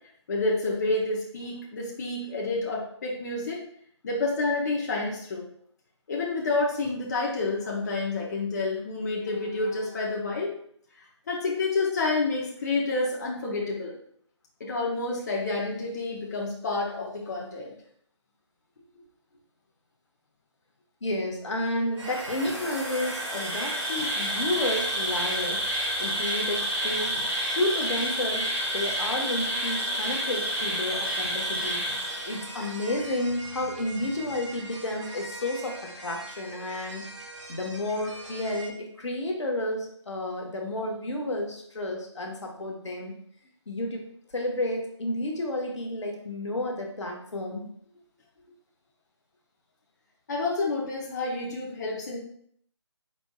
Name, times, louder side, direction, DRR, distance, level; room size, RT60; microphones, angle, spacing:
voice 1, 0.3-3.6 4.0-5.5 6.1-10.5 11.3-14.0 14.6-17.7 50.3-52.2, left 3 dB, 35° left, -3 dB, 0.8 m, -29 dB
voice 2, 21.0-25.7 26.0-31.8 32.2-37.0 37.5-43.1 43.7-44.0 44.3-47.7, left 1 dB, 70° left, 1 dB, 1.1 m, -31 dB
Insect, 21.9-32.7, equal, 15° right, 1.8 m, -30 dB
sound 1, 22.0-38.7, right 2 dB, 75° right, 1.1 m, -42 dB
4.4 x 4.3 x 2.3 m, 0.65 s
figure-of-eight pair, 160°, 15 cm